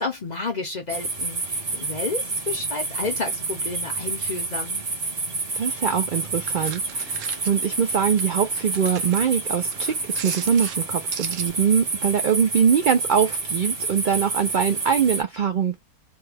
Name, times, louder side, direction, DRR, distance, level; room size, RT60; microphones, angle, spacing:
voice 1, 0.0-4.8, left 3 dB, 45° left, 0.6 m, -31 dB
sound 1, 0.9-15.2, right 3 dB, 30° right, 0.9 m, -29 dB
voice 2, 5.5-15.8, right 7 dB, 85° right, 0.4 m, -23 dB
sound 2, 6.0-11.5, right 9 dB, 65° right, 0.9 m, -40 dB
3.3 x 2.2 x 3.3 m
omnidirectional pair, 1.6 m